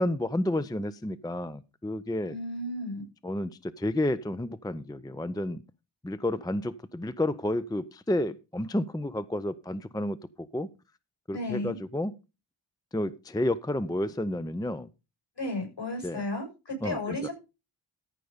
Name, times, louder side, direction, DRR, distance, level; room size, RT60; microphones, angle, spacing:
voice 1, 0.0-2.3 3.2-5.6 6.0-10.7 11.3-12.1 12.9-14.9 16.0-16.2 16.8-17.2, left 1 dB, 10° left, 0.5 m, -31 dB
voice 2, 2.3-3.0 11.3-11.8 15.4-17.3, left 1 dB, 55° left, 6.8 m, -33 dB
14.0 x 5.3 x 5.1 m
wide cardioid pair, 70°, 48 cm